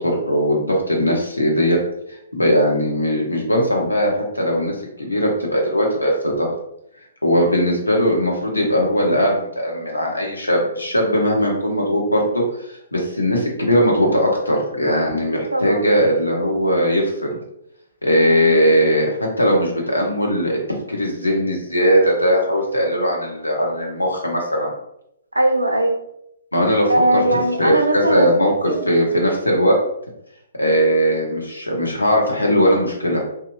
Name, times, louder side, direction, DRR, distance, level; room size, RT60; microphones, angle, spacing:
voice 1, 0.0-1.8 2.3-6.5 7.2-12.4 12.7-17.4 18.0-19.1 19.4-20.6 20.9-24.7 26.5-27.2 27.6-29.7 30.6-33.2, equal, 80° left, -1 dB, 0.8 m, -19 dB
voice 2, 15.5-15.9 18.2-18.5 25.3-26.0 26.9-29.1, right 1 dB, 85° right, 3 dB, 0.5 m, -21 dB
2.8 x 2.4 x 2.5 m, 0.78 s
figure-of-eight pair, 125°, 0 cm